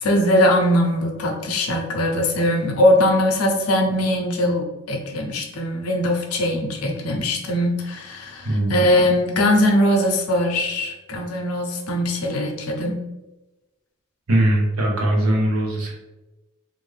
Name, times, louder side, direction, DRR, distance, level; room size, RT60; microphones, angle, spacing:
voice 1, 0.0-13.0, left 1 dB, 85° left, 2 dB, 0.5 m, -21 dB
voice 2, 8.4-8.9 12.8-12.9 14.3-15.9, right 1 dB, 90° right, -1 dB, 0.8 m, -21 dB
2.5 x 2.5 x 3.1 m, 1.0 s
head